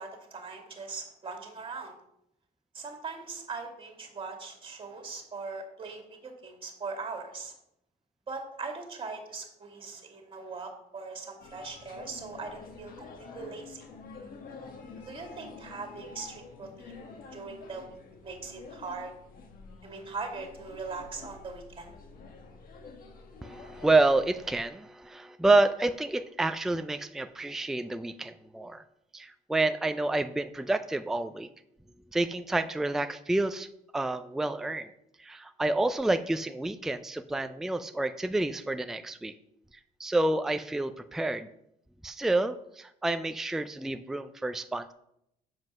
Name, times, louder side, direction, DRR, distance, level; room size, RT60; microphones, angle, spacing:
voice 1, 0.0-2.0 2.7-7.5 8.3-13.8 15.1-17.9 18.2-19.1 19.8-21.9, right 4 dB, 30° right, 3 dB, 2.3 m, -40 dB
sound 1, 11.4-24.7, left 4 dB, 55° left, 1.4 m, -48 dB
voice 2, 23.4-28.8 29.1-31.5 32.1-33.7 33.9-34.9 35.2-39.3 40.0-41.5 42.0-44.9, right 2 dB, ahead, 9 dB, 0.4 m, -28 dB
7.5 x 5.2 x 6.0 m, 0.77 s
cardioid pair, 110°, 17 cm